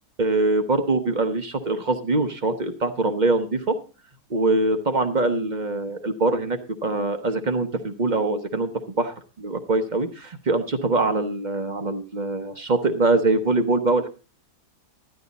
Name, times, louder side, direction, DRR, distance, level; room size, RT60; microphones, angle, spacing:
voice 1, 0.2-3.8 4.3-8.7 9.0-14.1, right 2 dB, 35° right, 8 dB, 0.8 m, -23 dB
12.0 x 10.5 x 4.0 m, 0.34 s
omnidirectional pair, 1.7 m